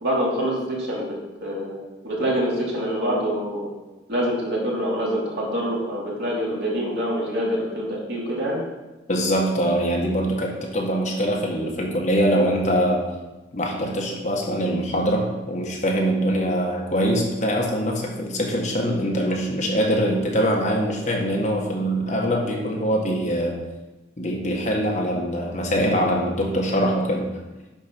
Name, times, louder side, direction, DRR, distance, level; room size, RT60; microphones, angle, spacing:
voice 1, 0.0-1.1 1.4-1.8 2.0-3.7 4.1-8.6, equal, 65° right, -5 dB, 3.1 m, -25 dB
voice 2, 9.1-13.0 13.5-23.6 24.2-27.3, equal, 40° left, -1 dB, 1.5 m, -23 dB
10.5 x 4.3 x 6.0 m, 1.1 s
head